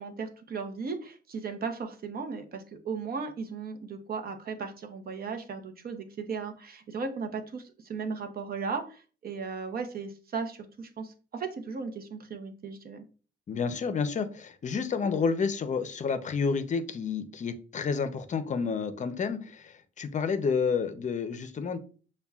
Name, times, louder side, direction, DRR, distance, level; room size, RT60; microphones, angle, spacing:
voice 1, 0.0-13.0, right 5 dB, 50° right, 6 dB, 0.7 m, -36 dB
voice 2, 13.5-21.8, left 5 dB, 40° left, 10 dB, 0.6 m, -30 dB
6.7 x 2.2 x 2.3 m, 0.38 s
cardioid pair, 90°, 20 cm